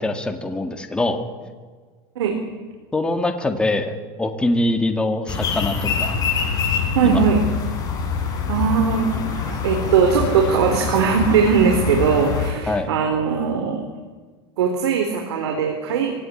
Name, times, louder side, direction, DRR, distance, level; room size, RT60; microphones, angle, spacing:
voice 1, 0.0-1.5 2.9-6.2 7.0-7.2 12.7-12.9, left 2 dB, 5° left, 5 dB, 1.9 m, -23 dB
sound 1, 5.3-12.5, left 6 dB, 30° left, 5.9 m, -25 dB
voice 2, 7.0-7.4 8.5-13.8 14.6-16.1, right 6 dB, 85° right, 3 dB, 3.8 m, -20 dB
23.5 x 17.5 x 9.8 m, 1.4 s
supercardioid pair, 150°, 14 cm